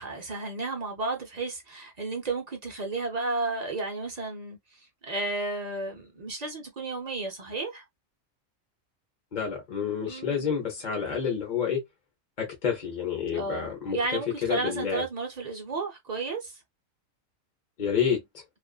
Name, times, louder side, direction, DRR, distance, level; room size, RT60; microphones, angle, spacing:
voice 1, 0.0-7.8 10.1-10.5 13.3-16.6, right 3 dB, 45° right, 0.6 m, -33 dB
voice 2, 9.3-11.8 12.4-15.0 17.8-18.4, left 7 dB, 40° left, 0.8 m, -29 dB
2.5 x 2.4 x 2.3 m
omnidirectional pair, 1.4 m